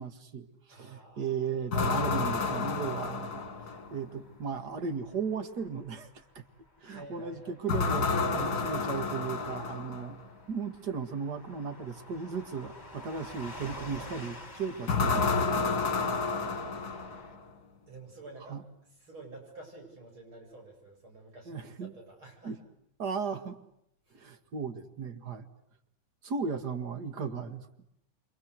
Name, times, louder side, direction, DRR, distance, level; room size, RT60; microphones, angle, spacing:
voice 1, 0.0-3.4 3.9-6.5 6.8-10.2 10.5-15.6 18.5-18.6 21.5-21.9 22.4-22.6 23.0-23.6 24.1-25.5 26.2-27.7, right 5 dB, 55° right, 9 dB, 2.5 m, -36 dB
voice 2, 0.7-1.7 6.8-7.6 15.9-16.3 17.9-18.6 19.0-22.5 24.1-24.2, right 2 dB, 90° right, 2 dB, 9.0 m, -50 dB
sound 1, 1.7-4.1 7.7-10.2 14.9-17.5, left 4 dB, 50° left, 2.5 m, -30 dB
Car passing by / Truck, 3.4-17.4, left 2 dB, 20° left, 5.7 m, -50 dB
29.5 x 25.0 x 8.1 m, 0.78 s
omnidirectional pair, 2.2 m